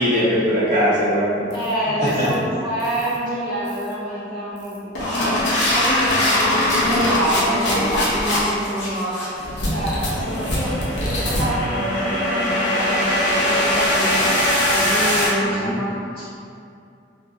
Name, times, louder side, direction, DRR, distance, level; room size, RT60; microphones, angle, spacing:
voice 1, 0.0-1.5 2.0-2.3 15.4-15.8, equal, 55° right, -12 dB, 1.1 m, -20 dB
sound 1, 1.5-1.7 2.1-2.3 2.8-3.1 3.7-3.9 4.6-15.3, left 1 dB, 75° left, 0.7 m, -21 dB
voice 2, 1.5-4.9 5.1-14.4 14.7-16.2, equal, 30° left, -14 dB, 1.3 m, -27 dB
2.9 x 2.7 x 2.3 m, 2.5 s
head